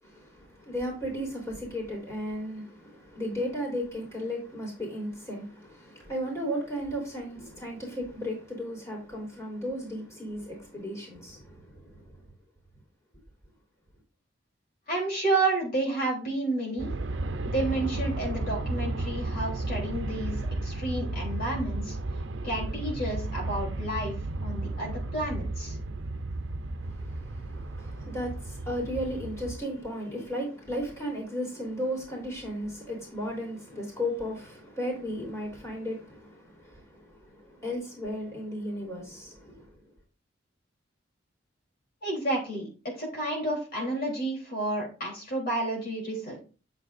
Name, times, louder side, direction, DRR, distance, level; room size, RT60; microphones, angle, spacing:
voice 1, 0.0-12.2 26.8-39.8, equal, 15° left, 3.4 m, -35 dB
voice 2, 14.9-16.9 17.5-22.0 22.4-24.1 24.4-25.8 42.0-46.4, right 2 dB, 50° left, 3.5 m, -30 dB
Aircraft, 16.8-29.6, right 2 dB, 70° right, 0.7 m, -33 dB
9.0 x 7.6 x 2.6 m
head